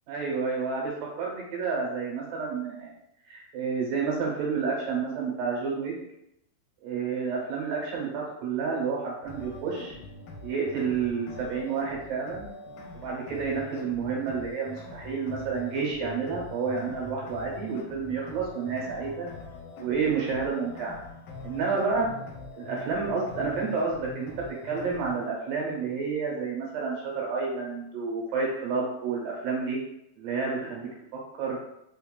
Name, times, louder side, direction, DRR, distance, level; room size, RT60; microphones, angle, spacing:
voice 1, 0.1-2.9 3.3-5.9 6.8-10.0 10.4-12.5 12.9-19.3 19.8-21.0 21.4-22.1 22.6-24.3 24.6-29.8 30.2-30.9 31.3-31.6, right 5 dB, 90° right, -2 dB, 2.6 m, -30 dB
sound 1, 9.3-25.3, left 2 dB, 85° left, 2.2 m, -43 dB
5.3 x 2.2 x 2.2 m, 0.82 s
omnidirectional pair, 3.7 m